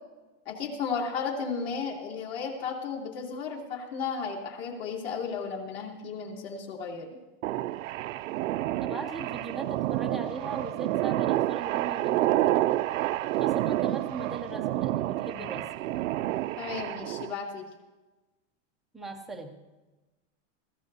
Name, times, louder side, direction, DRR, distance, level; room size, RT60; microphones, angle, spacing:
voice 1, 0.4-7.1 16.6-17.6, left 5 dB, 55° left, -1 dB, 3.1 m, -34 dB
sound 1, 7.4-17.3, right 15 dB, 85° right, 0.5 m, -29 dB
voice 2, 8.8-12.8 13.4-15.6 18.9-19.6, right 3 dB, ahead, 1 dB, 0.3 m, -38 dB
21.5 x 15.5 x 2.7 m, 1.2 s
supercardioid pair, 160°, 38 cm